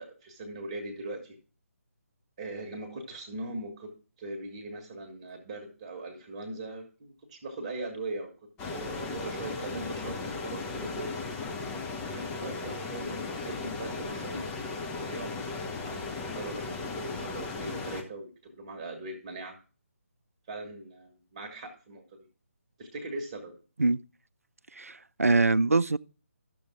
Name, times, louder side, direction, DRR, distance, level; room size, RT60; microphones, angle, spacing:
voice 1, 0.0-1.4 2.4-3.9 4.2-8.3 8.7-11.4 12.1-14.5 14.9-19.6 20.5-22.3 22.8-23.5, right 2 dB, 25° right, 1.7 m, -40 dB
sound 1, 8.6-18.0, left 3 dB, 10° left, 0.8 m, -36 dB
voice 2, 24.7-26.0, right 3 dB, 75° right, 0.4 m, -24 dB
12.0 x 6.9 x 3.6 m
figure-of-eight pair, 145°, 8 cm